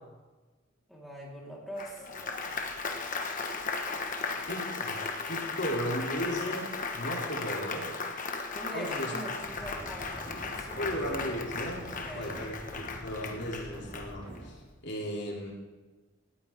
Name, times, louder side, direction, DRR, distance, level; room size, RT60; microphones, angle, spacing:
voice 1, 0.9-2.4 8.5-11.0 12.0-12.4, equal, ahead, -5 dB, 3.6 m, -43 dB
Applause, 1.8-14.5, left 4 dB, 40° left, 1.3 m, -36 dB
voice 2, 4.5-7.9 8.7-9.2 10.8-15.5, equal, 60° left, -1 dB, 2.8 m, -36 dB
sound 1, 9.4-14.5, right 1 dB, 25° right, 5.8 m, -45 dB
18.5 x 14.5 x 3.5 m, 1.2 s
head